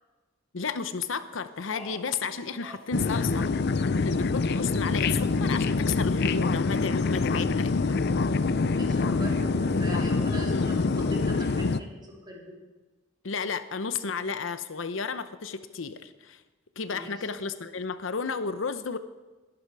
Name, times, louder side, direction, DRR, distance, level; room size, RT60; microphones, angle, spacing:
voice 1, 0.5-3.6 4.0-8.0 10.5-10.8 13.2-16.4 16.8-19.0, left 5 dB, 85° left, 11 dB, 0.8 m, -33 dB
Speech, 1.4-3.4 3.7-4.5 6.0-6.6, left 1 dB, 5° left, 3.4 m, -49 dB
sound 1, 2.9-11.8, left 4 dB, 55° left, 0.5 m, -25 dB
voice 2, 8.7-12.6 16.9-17.3, right 1 dB, 25° right, -2 dB, 3.7 m, -42 dB
21.0 x 11.0 x 4.8 m, 1.2 s
head